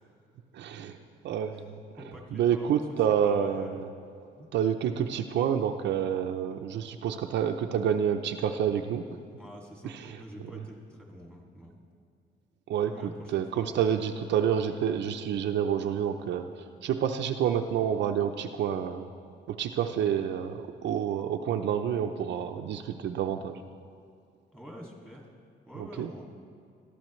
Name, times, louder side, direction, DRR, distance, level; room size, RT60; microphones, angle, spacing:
voice 1, 0.5-0.9 1.2-1.8 2.3-3.9 4.5-9.0 9.8-10.2 12.7-19.1 19.5-23.6 25.8-26.1, right 8 dB, 65° right, 5 dB, 0.6 m, -28 dB
voice 2, 2.0-3.8 4.4-4.5 9.4-11.8 12.9-13.7 24.5-25.3 25.7-26.3, equal, 5° left, -2 dB, 2.2 m, -46 dB
21.0 x 13.5 x 3.2 m, 2.3 s
cardioid pair, 150°, 20 cm